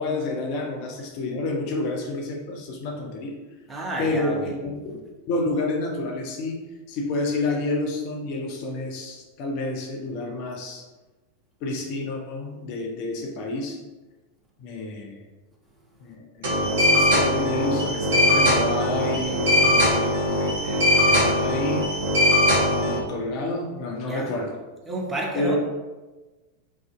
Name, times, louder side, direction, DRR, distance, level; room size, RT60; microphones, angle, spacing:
voice 1, 0.0-3.3 4.0-5.0 5.3-6.6 6.9-10.8 11.6-13.8 14.6-15.2 16.0-21.8 22.7-24.5 25.4-25.6, left 2 dB, 45° left, 1 dB, 0.4 m, -29 dB
voice 2, 3.7-4.5 24.1-24.3 24.9-25.6, right 2 dB, 15° right, -2 dB, 0.5 m, -30 dB
sound 1, 16.4-23.0, left 1 dB, 60° right, 0.8 m, -20 dB
2.5 x 2.3 x 2.2 m, 1.2 s
figure-of-eight pair, 90°, 0 cm